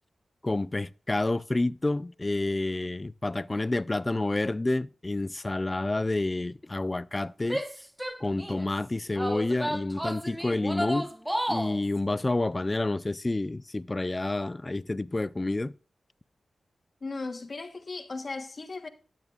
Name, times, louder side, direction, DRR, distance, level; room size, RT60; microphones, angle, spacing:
voice 1, 0.4-7.6 8.2-11.1 11.5-15.8, left 2 dB, 30° left, 0.4 m, -29 dB
Female speech woman speaking / Yell, 7.4-8.7 9.2-11.8, equal, 5° right, 1.0 m, -32 dB
voice 2, 17.0-18.9, left 3 dB, 50° left, 1.2 m, -37 dB
12.5 x 9.2 x 2.4 m
cardioid pair, 55°, 0 cm